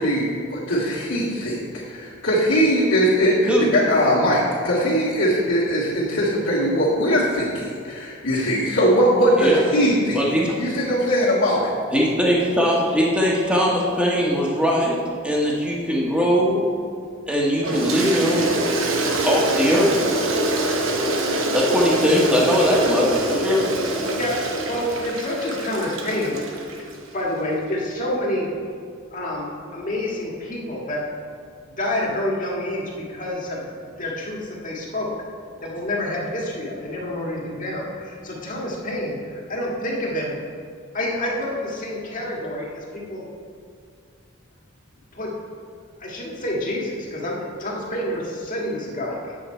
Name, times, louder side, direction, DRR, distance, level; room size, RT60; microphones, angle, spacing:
voice 1, 0.0-1.6 1.9-10.2 10.6-11.7, equal, 75° left, -11 dB, 1.8 m, -20 dB
voice 2, 10.1-10.6 11.9-15.0 15.2-16.7 17.2-18.5 19.2-20.0 21.5-23.7, equal, 5° right, -4 dB, 1.4 m, -20 dB
Toilet flush, 17.6-27.0, right 2 dB, 70° right, 1.0 m, -25 dB
voice 3, 24.1-28.5 29.1-31.0 31.8-33.7 34.0-35.1 35.6-40.4 40.9-43.3 45.1-45.3 46.0-49.3, left 1 dB, 40° left, -3 dB, 1.7 m, -28 dB
8.0 x 7.7 x 4.4 m, 2.3 s
head